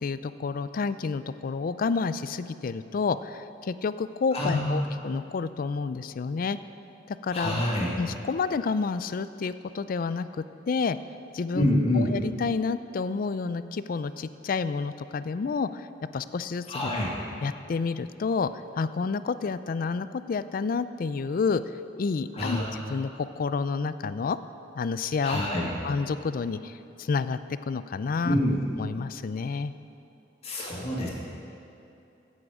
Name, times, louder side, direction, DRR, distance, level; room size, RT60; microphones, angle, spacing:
voice 1, 0.0-6.6 7.1-7.6 8.0-10.3 10.7-11.0 11.3-15.9 16.1-17.0 17.4-18.5 18.8-21.6 22.0-23.1 23.4-24.4 24.8-27.4 27.7-28.4 28.8-29.7, left 4 dB, 50° left, 13 dB, 0.4 m, -29 dB
voice 2, 4.3-4.9 7.3-7.9 11.5-12.1 16.7-17.1 22.3-22.7 25.2-25.7 28.2-28.6 30.4-31.1, left 1 dB, 35° left, -4 dB, 2.0 m, -26 dB
14.0 x 8.5 x 4.8 m, 2.9 s
head